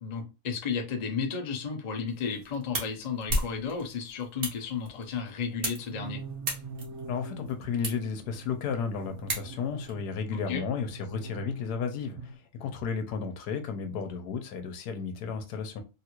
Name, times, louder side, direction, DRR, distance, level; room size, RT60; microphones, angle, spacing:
voice 1, 0.0-6.2 10.3-10.6, left 6 dB, 50° left, 0.5 m, -33 dB
sound 1, 2.1-9.9, right 1 dB, 45° right, 1.1 m, -37 dB
sound 2, 5.7-12.4, right 3 dB, 65° right, 0.8 m, -44 dB
voice 2, 7.1-12.2 12.5-15.8, left 6 dB, 80° left, 1.2 m, -33 dB
3.3 x 2.4 x 2.9 m
omnidirectional pair, 1.6 m